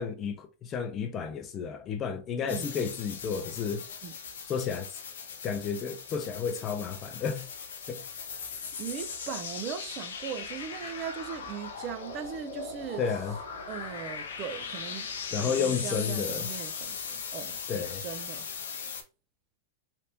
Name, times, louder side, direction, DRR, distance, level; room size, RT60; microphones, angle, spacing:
voice 1, 0.0-3.8 4.5-4.9 5.4-7.5 7.9-8.0 13.0-13.4 15.3-16.5 17.7-18.0, left 6 dB, 30° left, 0.6 m, -32 dB
sound 1, 2.5-19.0, left 5 dB, 85° left, 0.8 m, -39 dB
voice 2, 8.8-13.0 13.7-15.1 15.4-18.5, right 8 dB, 40° right, 0.5 m, -39 dB
3.4 x 2.5 x 2.9 m
hypercardioid pair, 120°, 0 cm